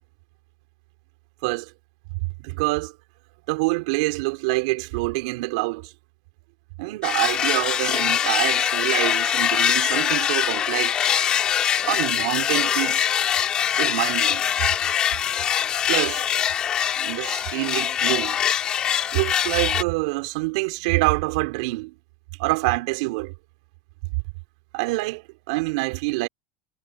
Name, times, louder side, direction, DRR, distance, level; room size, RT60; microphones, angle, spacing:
voice 1, 2.4-2.9 3.5-5.9 6.8-11.0 11.8-13.1 13.8-14.5 15.9-16.2 17.0-18.4 19.1-21.9 22.4-23.3 24.7-26.3, right 24 dB, 65° right, 4.5 m, -26 dB
sound 1, 7.0-19.8, left 9 dB, 25° left, 2.9 m, -23 dB
supercardioid pair, 170°, 3 cm